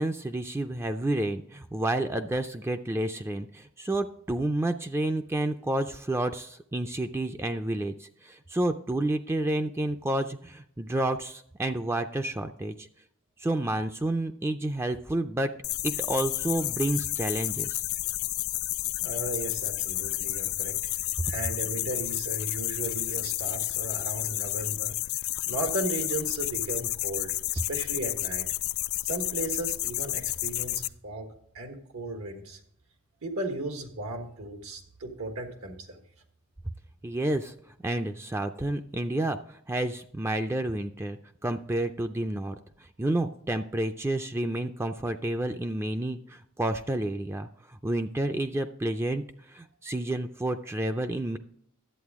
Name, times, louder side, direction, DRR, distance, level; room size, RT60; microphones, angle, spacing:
voice 1, 0.0-12.9 13.4-15.5 15.8-17.8 37.0-37.5 37.8-42.5 43.0-47.5 47.8-49.2 49.5-51.4, right 1 dB, 10° right, 7 dB, 0.3 m, -30 dB
sound 1, 15.6-30.9, left 18 dB, 70° left, 0.3 m, -31 dB
voice 2, 19.0-25.0 25.5-27.3 27.7-28.5 29.0-31.3 31.5-32.6 33.2-36.0, right 2 dB, 85° right, 5 dB, 1.4 m, -35 dB
11.0 x 8.1 x 3.5 m, 0.68 s
head